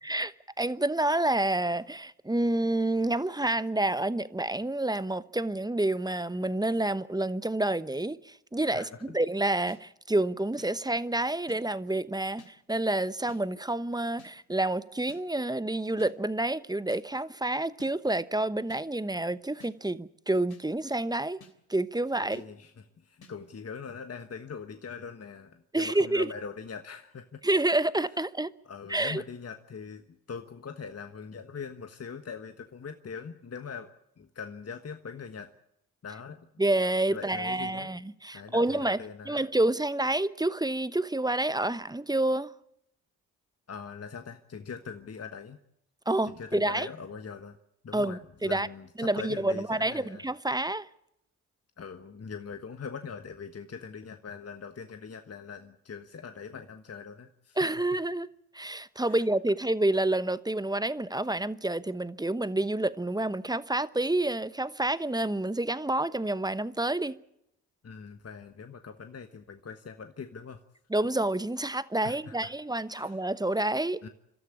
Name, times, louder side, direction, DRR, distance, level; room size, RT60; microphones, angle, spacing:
voice 1, 0.1-21.4 21.7-22.4 25.7-26.3 27.4-28.5 28.9-29.2 36.6-39.0 39.3-42.5 46.1-46.9 47.9-48.7 49.0-50.9 57.6-58.3 58.5-67.2 70.9-74.0, right 1 dB, 10° right, 0.9 m, -28 dB
voice 2, 8.7-9.2 22.2-27.4 28.6-35.5 36.0-36.5 37.1-37.9 38.3-39.4 43.7-45.6 46.2-47.6 47.8-50.2 51.8-57.6 59.0-59.2 67.8-70.6 72.0-72.5 72.9-73.2 74.0-74.1, left 6 dB, 35° left, 1.4 m, -42 dB
sound 1, 9.7-9.8 10.6-10.7 11.5-11.6 12.4-12.5 13.3-13.4 14.2-14.3 15.1-15.2 16.0-16.1 16.9-17.0 17.8-17.9 18.7-18.8 19.6-19.7 20.5-20.6 21.4-21.5 22.3-22.4 23.2-23.3, left 4 dB, 55° left, 3.3 m, -52 dB
30.0 x 13.0 x 8.6 m
hypercardioid pair, 45°, 43 cm